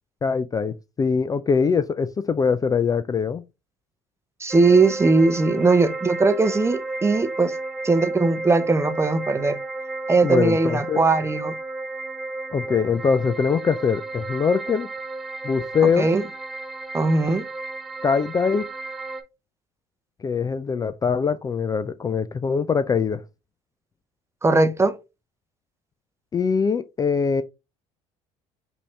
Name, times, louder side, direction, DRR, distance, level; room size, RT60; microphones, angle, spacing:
voice 1, 0.2-3.4 10.2-11.0 12.5-14.9 15.4-16.1 18.0-18.6 20.2-23.2 26.3-27.4, left 5 dB, 25° left, 0.4 m, -22 dB
voice 2, 4.4-7.5 7.8-9.6 10.1-11.6 16.0-16.2 16.9-17.4 24.4-25.0, right 3 dB, 15° right, 0.7 m, -19 dB
sound 1, 4.5-19.2, right 2 dB, ahead, 1.1 m, -33 dB
5.3 x 2.7 x 3.2 m
hypercardioid pair, 65°, 16 cm